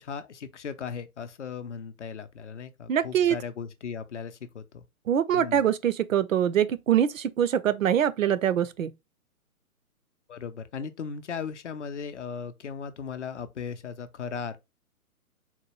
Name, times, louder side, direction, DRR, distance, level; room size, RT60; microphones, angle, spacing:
voice 1, 0.0-4.8 5.3-5.6 10.3-14.6, left 6 dB, 55° left, 0.5 m, -37 dB
voice 2, 2.9-3.4 5.1-8.9, right 9 dB, 65° right, 0.5 m, -24 dB
4.0 x 2.2 x 2.9 m
figure-of-eight pair, 130°, 44 cm